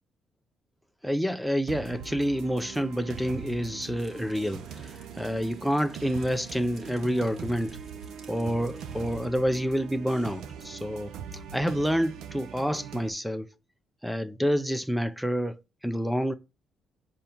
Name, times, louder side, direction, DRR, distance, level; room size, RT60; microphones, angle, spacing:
voice 1, 1.0-7.8 8.3-13.5 14.0-15.6 15.8-16.3, equal, ahead, 0.7 m, -28 dB
sound 1, 1.7-13.1, right 8 dB, 85° right, 0.7 m, -42 dB
sound 2, 4.0-9.2, right 3 dB, 55° right, 3.1 m, -53 dB
5.4 x 5.1 x 4.4 m
cardioid pair, 90°, 0 cm